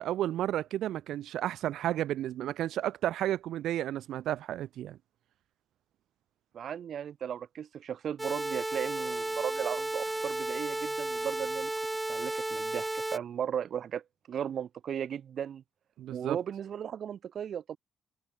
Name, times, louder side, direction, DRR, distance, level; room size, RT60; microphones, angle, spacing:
voice 1, 0.0-5.0 16.0-16.4, right 12 dB, 80° right, 1.5 m, -32 dB
voice 2, 6.5-11.7 12.1-15.6 16.1-17.8, right 8 dB, 60° right, 4.0 m, -36 dB
sound 1, 8.2-13.2, right 2 dB, 15° right, 1.4 m, -33 dB
cardioid pair, 90°, 0 cm